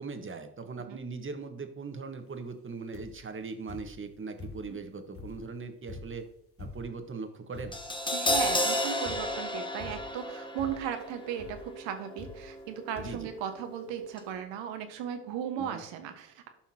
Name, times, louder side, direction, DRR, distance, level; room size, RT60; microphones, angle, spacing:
voice 1, 0.0-6.3 6.6-7.8 13.0-13.3 15.6-15.8, right 4 dB, 25° right, 7 dB, 1.4 m, -40 dB
sound 1, 2.9-3.3 3.7-4.8 5.1-7.1 7.5-8.0 8.3-8.7 9.1-9.5 9.8-10.3 10.6-11.0 11.4-11.7 12.2-12.7 13.0-13.3 14.0-14.1 14.3-14.4, left 3 dB, 25° left, 1.6 m, -46 dB
Crash cymbal, 7.7-13.9 14.1-14.3, left 1 dB, 10° left, 1.1 m, -33 dB
voice 2, 8.1-16.5, right 8 dB, 65° right, 7 dB, 1.5 m, -36 dB
13.0 x 5.7 x 2.9 m, 0.73 s
hypercardioid pair, 60°, 48 cm